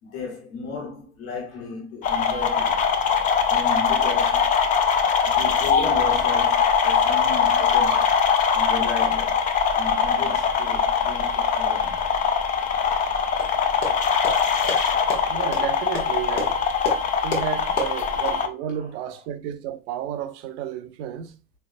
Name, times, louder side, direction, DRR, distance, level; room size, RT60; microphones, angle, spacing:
voice 1, 0.0-2.7 3.5-4.4 5.2-12.0 12.5-12.7 13.0-13.2 14.1-14.4 14.8-15.4 17.8-18.1 18.7-19.1, left 4 dB, 65° left, 1.5 m, -36 dB
sound 1, 2.0-18.5, left 6 dB, 20° left, 0.3 m, -22 dB
sound 2, 13.4-18.3, left 2 dB, 80° left, 1.1 m, -33 dB
voice 2, 15.2-16.6 17.2-21.3, right 10 dB, 55° right, 0.6 m, -32 dB
3.9 x 3.2 x 2.5 m
figure-of-eight pair, 65°, 43 cm